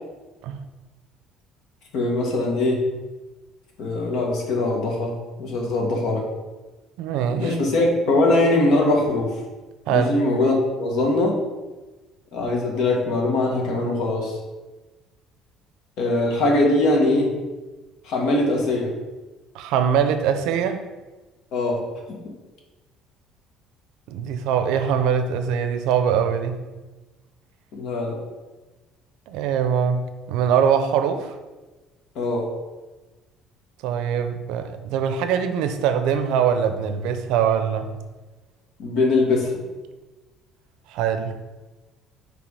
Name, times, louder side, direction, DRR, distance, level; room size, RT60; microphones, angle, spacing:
voice 1, 1.9-2.9 3.8-6.3 7.3-9.4 9.9-11.4 12.3-14.4 16.0-17.3 18.0-18.9 21.5-22.2 27.7-28.2 32.1-32.5 38.8-39.6, left 2 dB, 65° left, 0 dB, 1.4 m, -22 dB
voice 2, 7.0-7.5 9.9-10.2 19.5-20.8 24.1-26.6 29.3-31.3 33.8-37.9 40.9-41.3, right 8 dB, 80° right, 9 dB, 0.5 m, -22 dB
6.0 x 3.4 x 4.8 m, 1.2 s
cardioid pair, 140°, 0 cm